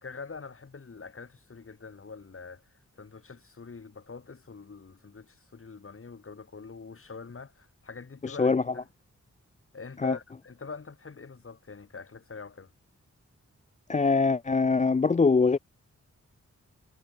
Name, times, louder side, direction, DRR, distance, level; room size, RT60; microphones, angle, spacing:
voice 1, 0.0-8.9 9.7-12.7, left 4 dB, 45° left, 2.3 m, -44 dB
voice 2, 8.2-8.6 10.0-10.2 13.9-15.6, left 4 dB, 25° left, 0.5 m, -23 dB
cardioid pair, 70°, 30 cm